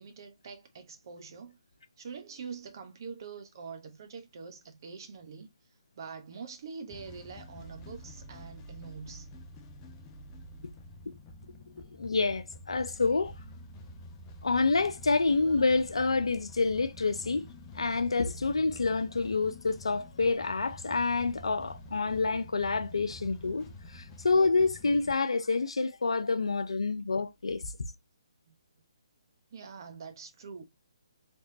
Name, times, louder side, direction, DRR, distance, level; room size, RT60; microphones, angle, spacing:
voice 1, 0.0-1.6 2.0-5.5 6.0-9.3 28.5-28.6 29.5-30.6, right 5 dB, 45° right, 0.9 m, -44 dB
sound 1, 6.9-25.1, left 1 dB, 20° left, 0.5 m, -48 dB
voice 2, 11.8-13.3 14.4-17.4 17.7-27.7, left 3 dB, 85° left, 0.7 m, -28 dB
3.5 x 3.0 x 2.7 m
hypercardioid pair, 155°, 3 cm